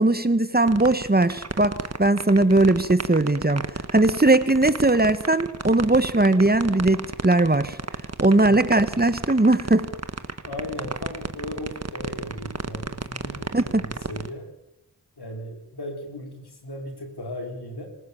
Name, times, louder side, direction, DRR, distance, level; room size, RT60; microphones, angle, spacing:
voice 1, 0.0-7.8 8.2-9.9 13.5-13.9, right 2 dB, 25° right, 13 dB, 1.4 m, -19 dB
sound 1, 0.7-14.3, right 4 dB, 40° right, 1.4 m, -31 dB
voice 2, 8.4-9.0 10.4-14.5 15.2-17.9, left 1 dB, 85° left, 3 dB, 4.5 m, -37 dB
26.5 x 15.5 x 7.2 m, 0.88 s
cardioid pair, 45°, 38 cm